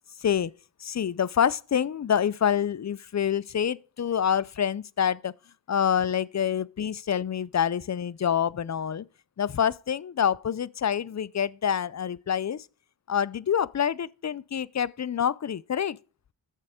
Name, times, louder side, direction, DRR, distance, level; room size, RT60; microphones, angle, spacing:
voice 1, 0.2-0.5 0.8-5.3 5.7-9.1 9.4-12.7 13.1-16.0, left 8 dB, 40° left, 0.4 m, -27 dB
9.2 x 7.1 x 4.8 m
wide cardioid pair, 45°, 43 cm